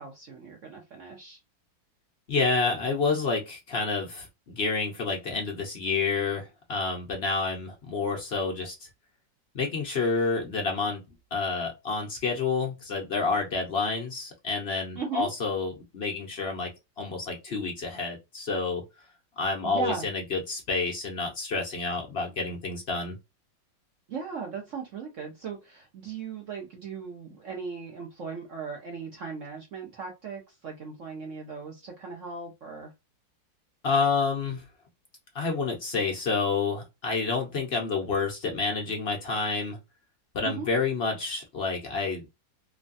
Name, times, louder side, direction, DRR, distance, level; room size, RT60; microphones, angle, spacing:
voice 1, 0.0-1.4 15.0-15.3 19.6-20.1 24.1-32.9 40.4-40.7, right 5 dB, 55° right, 0.9 m, -37 dB
voice 2, 2.3-8.7 9.5-11.0 11.3-16.7 17.0-18.8 19.4-23.2 33.8-34.6 35.3-39.8 40.3-42.3, left 4 dB, 60° left, 0.6 m, -29 dB
3.1 x 2.2 x 2.5 m
omnidirectional pair, 2.0 m